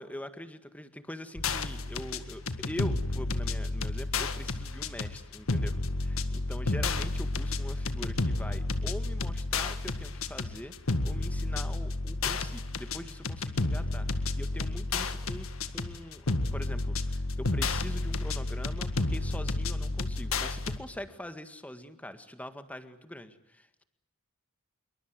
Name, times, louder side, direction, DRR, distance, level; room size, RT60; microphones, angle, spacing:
voice 1, 0.0-15.5 15.7-16.3 16.5-23.8, left 1 dB, 5° left, 9 dB, 1.8 m, -43 dB
sound 1, 1.4-20.8, left 2 dB, 75° left, 1.8 m, -31 dB
26.5 x 23.5 x 8.1 m, 0.82 s
head